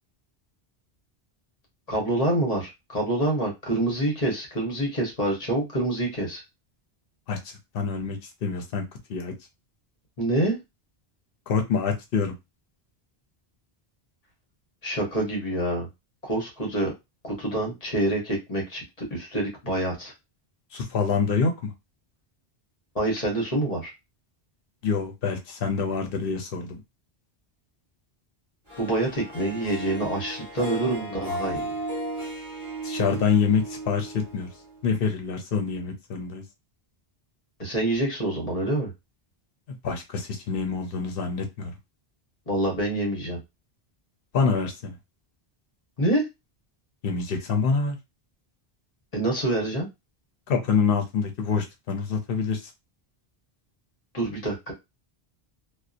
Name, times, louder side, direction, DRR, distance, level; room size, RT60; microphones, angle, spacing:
voice 1, 1.9-6.4 10.2-10.6 14.8-15.9 16.2-16.9 17.2-20.1 22.9-23.9 28.8-31.7 37.6-38.9 42.5-43.4 46.0-46.2 49.1-49.9 54.1-54.7, right 1 dB, 40° left, 0 dB, 1.0 m, -26 dB
voice 2, 7.7-8.8 9.1-9.3 11.5-12.4 20.7-21.7 24.8-26.8 32.8-34.5 34.8-36.4 39.8-41.7 44.3-45.0 47.0-48.0 50.5-52.7, left 5 dB, 65° left, 4 dB, 0.8 m, -26 dB
Harp, 28.7-35.0, right 1 dB, 25° right, 1.3 m, -35 dB
2.6 x 2.2 x 2.4 m, 0.22 s
omnidirectional pair, 1.1 m